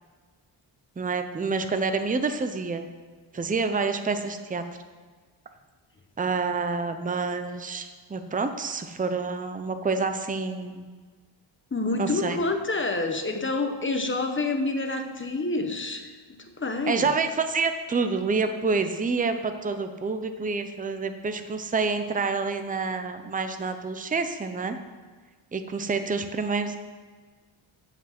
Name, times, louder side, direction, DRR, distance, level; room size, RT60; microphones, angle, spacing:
voice 1, 1.0-2.9 3.3-4.6 6.2-10.9 12.0-12.4 16.9-24.8 25.5-26.8, right 4 dB, 15° right, 8 dB, 0.6 m, -28 dB
voice 2, 11.7-17.1, left 2 dB, 25° left, 5 dB, 1.0 m, -28 dB
15.5 x 6.0 x 5.9 m, 1.5 s
wide cardioid pair, 165°, 48 cm